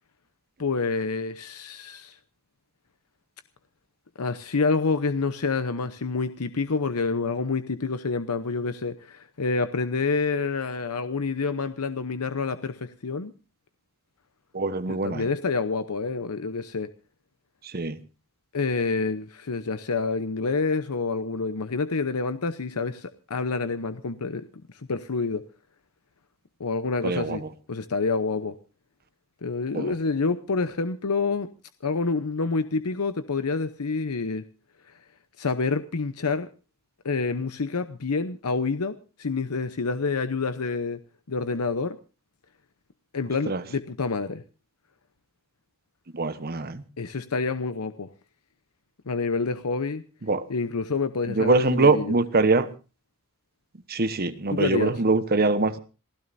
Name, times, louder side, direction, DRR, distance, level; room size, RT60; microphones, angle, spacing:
voice 1, 0.6-2.2 4.2-13.3 14.9-16.9 18.5-24.5 24.9-25.4 26.6-27.4 27.7-28.5 29.4-31.5 31.8-34.4 35.4-36.5 37.0-41.0 41.3-42.0 43.1-44.4 47.0-48.1 49.1-50.0 50.5-52.2 54.5-55.0, left 4 dB, 80° left, 0.8 m, -28 dB
voice 2, 14.5-15.3 17.7-18.0 27.0-27.4 29.7-29.9 43.5-43.6 46.1-46.8 50.3-50.4 51.3-52.7 53.9-55.8, right 3 dB, 45° right, 1.2 m, -23 dB
27.5 x 16.0 x 2.7 m
head